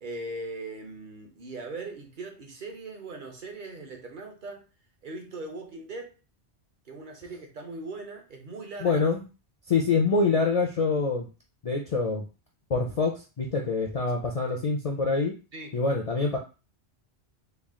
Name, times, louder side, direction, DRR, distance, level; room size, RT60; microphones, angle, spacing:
voice 1, 0.0-4.7 5.0-6.1 6.8-9.1 14.5-14.6 15.5-15.7, right 2 dB, 50° right, 0.9 m, -40 dB
voice 2, 8.8-9.2 9.7-11.3 11.6-12.3 12.7-15.4 15.7-16.4, left 4 dB, 50° left, 0.4 m, -25 dB
3.3 x 2.4 x 3.6 m
omnidirectional pair, 1.1 m